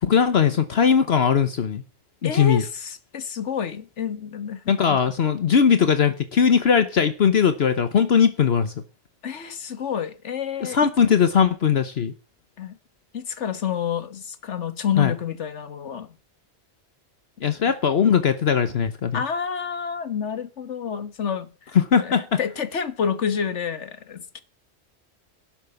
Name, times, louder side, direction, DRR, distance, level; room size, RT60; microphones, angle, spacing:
voice 1, 0.0-1.8 2.2-2.6 4.7-8.7 10.6-12.1 15.0-15.1 17.4-19.2 21.7-22.4, left 7 dB, 65° left, 1.2 m, -19 dB
voice 2, 2.2-4.6 4.9-5.1 9.2-11.2 12.6-12.8 13.1-16.1 17.6-17.7 19.1-21.7 22.0-24.4, left 7 dB, 85° left, 1.7 m, -29 dB
12.0 x 7.6 x 7.0 m
omnidirectional pair, 1.2 m